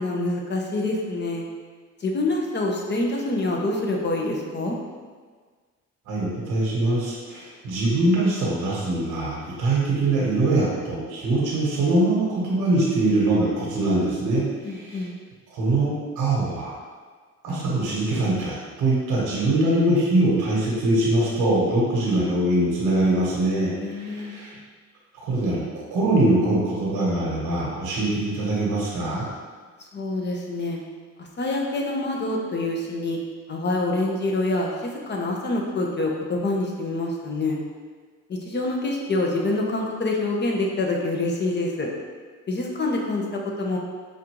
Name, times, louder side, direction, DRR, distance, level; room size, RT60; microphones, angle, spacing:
voice 1, 0.0-1.4 2.0-4.8 14.6-15.1 23.8-24.3 29.9-30.8 31.2-33.2 33.5-37.6 38.3-41.9 42.5-43.8, left 2 dB, 35° left, 0 dB, 0.8 m, -26 dB
voice 2, 6.1-15.0 15.5-16.7 17.4-24.6 25.2-25.6 25.9-29.3, right 2 dB, 85° right, -6 dB, 1.1 m, -23 dB
5.2 x 2.6 x 3.0 m, 1.5 s
cardioid pair, 90°, 30 cm